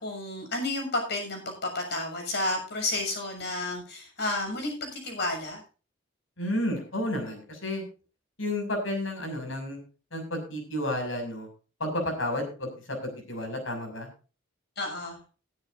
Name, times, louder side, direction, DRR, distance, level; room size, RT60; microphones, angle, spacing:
voice 1, 0.0-5.6 14.8-15.2, left 2 dB, 55° left, 3 dB, 6.7 m, -31 dB
voice 2, 6.4-7.8 8.4-9.8 10.1-11.5 11.8-14.1, left 1 dB, 80° left, 4 dB, 6.4 m, -31 dB
20.0 x 10.5 x 2.6 m, 0.35 s
head